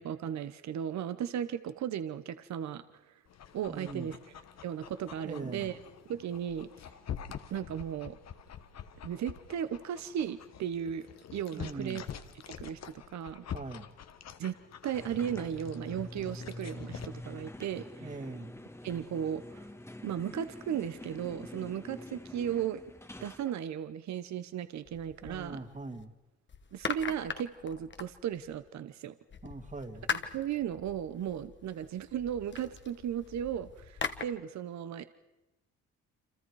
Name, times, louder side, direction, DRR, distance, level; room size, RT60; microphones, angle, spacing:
voice 1, 0.0-2.8 3.5-4.2 4.6-5.8 6.1-6.7 7.5-8.2 9.0-11.1 11.3-12.0 12.5-13.4 14.4-14.5 14.8-18.1 18.8-19.7 20.0-22.8 23.2-25.6 26.7-29.1 30.1-35.0, right 9 dB, 65° right, 12 dB, 1.0 m, -36 dB
Dog, 3.3-17.1, left 9 dB, 60° left, 1.4 m, -46 dB
voice 2, 3.7-4.1 5.2-5.7 11.5-12.0 13.5-13.9 18.0-18.6 25.2-26.1 29.4-30.1, right 3 dB, 25° right, 6 dB, 2.2 m, -41 dB
sound 1, 14.9-23.5, left 1 dB, 10° left, 1.5 m, -46 dB
sound 2, 24.8-26.0 26.5-28.7 29.3-34.2, left 6 dB, 40° left, 1.4 m, -41 dB
29.0 x 26.5 x 4.8 m, 0.99 s
cardioid pair, 90°, 30 cm